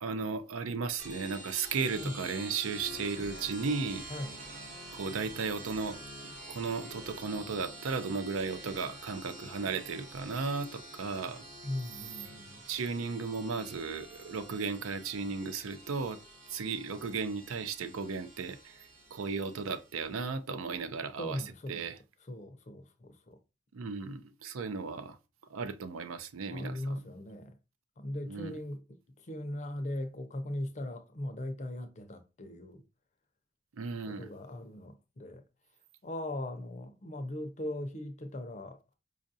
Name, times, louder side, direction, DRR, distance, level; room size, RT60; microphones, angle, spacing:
voice 1, 0.0-4.1 4.9-6.0 6.5-11.4 12.7-16.2 16.5-21.4 21.7-22.0 23.7-25.2 25.5-27.0 28.3-28.5 33.7-34.3, right 4 dB, 85° right, 0.5 m, -35 dB
sound 1, 1.0-20.1, right 1 dB, 35° right, 0.8 m, -48 dB
voice 2, 11.6-12.6 21.2-21.9 22.3-23.4 26.5-27.6 28.0-32.8 34.1-35.4 36.0-38.8, left 1 dB, 35° left, 0.5 m, -39 dB
5.0 x 2.4 x 2.6 m
head